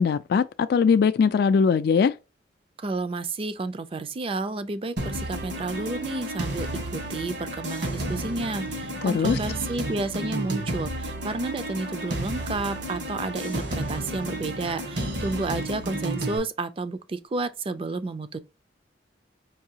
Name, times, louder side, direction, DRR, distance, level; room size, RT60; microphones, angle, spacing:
voice 1, 0.0-2.1 9.0-9.4, left 6 dB, 60° left, 0.3 m, -21 dB
voice 2, 2.8-18.4, right 3 dB, 30° right, 0.4 m, -31 dB
sound 1, 5.0-16.4, right 1 dB, 70° right, 1.3 m, -32 dB
4.7 x 2.7 x 2.8 m
head